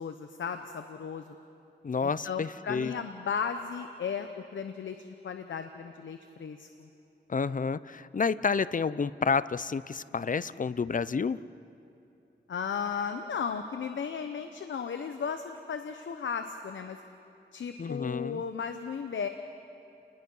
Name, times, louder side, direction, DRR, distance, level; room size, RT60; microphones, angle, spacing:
voice 1, 0.0-1.4 2.0-6.9 12.5-17.0 17.5-19.3, left 6 dB, 90° left, 7 dB, 0.9 m, -35 dB
voice 2, 1.8-2.9 7.3-11.4 17.8-18.4, left 5 dB, 45° left, 17 dB, 0.6 m, -30 dB
30.0 x 20.0 x 5.6 m, 2.8 s
cardioid pair, 55°, 19 cm